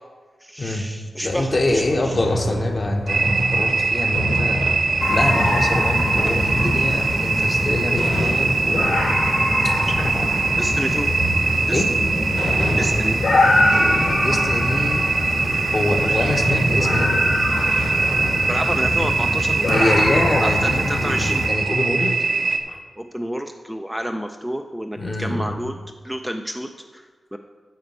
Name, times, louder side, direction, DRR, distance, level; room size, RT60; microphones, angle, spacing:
voice 1, 0.4-2.2 10.6-11.1 11.7-12.0 12.8-13.2 18.5-20.1 20.4-21.4 23.0-25.7 26.0-27.4, equal, ahead, 4 dB, 0.3 m, -29 dB
voice 2, 1.2-4.6 5.1-9.2 9.6-10.5 11.7-11.9 14.1-15.1 15.7-17.1 19.7-22.2 22.7-22.8 25.0-25.5, left 1 dB, 30° left, 5 dB, 1.0 m, -25 dB
sound 1, 1.3-19.3, left 1 dB, 60° left, 2.1 m, -29 dB
sound 2, 3.1-22.6, right 4 dB, 85° right, 0.9 m, -22 dB
sound 3, 5.0-21.5, left 2 dB, 85° left, 2.1 m, -24 dB
9.5 x 5.2 x 7.9 m, 1.5 s
wide cardioid pair, 165°, 0 cm